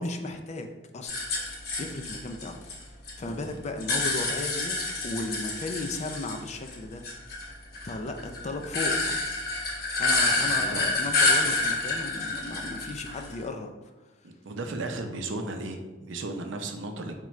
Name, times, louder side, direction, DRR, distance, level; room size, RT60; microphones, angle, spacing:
voice 1, 0.0-2.8 3.2-4.8 5.0-7.0 7.8-9.2 10.0-13.7, left 2 dB, 35° left, 5 dB, 0.4 m, -35 dB
sound 1, 1.1-3.1 3.4-6.8 7.0-13.4, left 2 dB, 55° left, 1.0 m, -28 dB
voice 2, 10.4-10.9 14.2-17.2, right 2 dB, 80° right, 5 dB, 0.6 m, -35 dB
4.4 x 3.7 x 3.1 m, 1.1 s
head